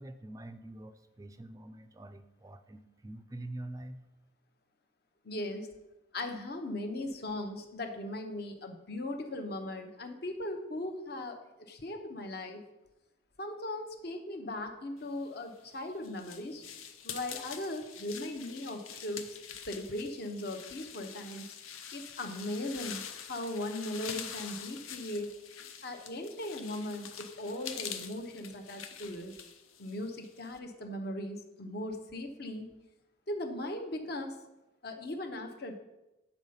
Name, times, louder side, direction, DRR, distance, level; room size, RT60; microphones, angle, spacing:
voice 1, 0.0-4.0, right 1 dB, 15° right, 9 dB, 0.3 m, -45 dB
voice 2, 5.2-5.7 6.1-12.6 13.4-16.6 17.0-19.3 19.7-21.5 21.9-25.3 25.8-29.3 29.8-32.7 33.3-34.3 34.8-35.8, left 1 dB, 50° left, 5 dB, 0.8 m, -38 dB
sound 1, 15.4-30.6, left 8 dB, 90° left, 0.7 m, -45 dB
8.0 x 4.3 x 5.5 m, 0.97 s
head